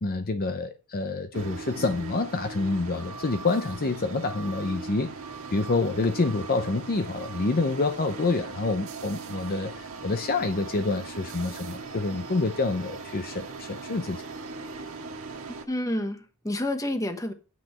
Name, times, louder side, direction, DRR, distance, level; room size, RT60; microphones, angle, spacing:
voice 1, 0.0-5.1 5.5-14.2, left 3 dB, 45° left, 0.7 m, -27 dB
sound 1, 1.3-15.6, right 4 dB, 65° right, 1.6 m, -39 dB
voice 2, 15.5-17.3, left 1 dB, 15° left, 1.1 m, -29 dB
9.4 x 7.7 x 4.4 m
head